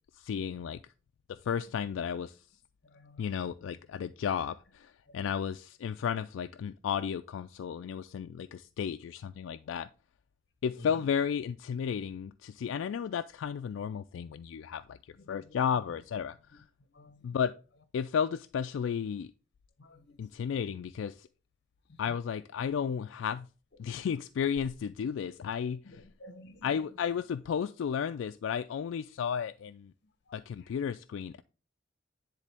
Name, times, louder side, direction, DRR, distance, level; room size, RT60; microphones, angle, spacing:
voice 1, 0.1-0.8 1.3-2.4 3.2-9.9 10.6-16.7 17.2-17.5 17.9-19.3 20.2-21.3 22.0-23.5 23.8-25.8 26.6-29.9 30.3-31.4, left 7 dB, 85° left, 0.3 m, -33 dB
voice 2, 2.8-3.6 5.1-5.4 10.8-11.1 15.1-16.0 16.5-17.4 19.8-20.7 21.9-22.2 25.8-27.0 30.0-30.7, left 2 dB, 60° left, 0.9 m, -54 dB
9.9 x 3.8 x 3.4 m
head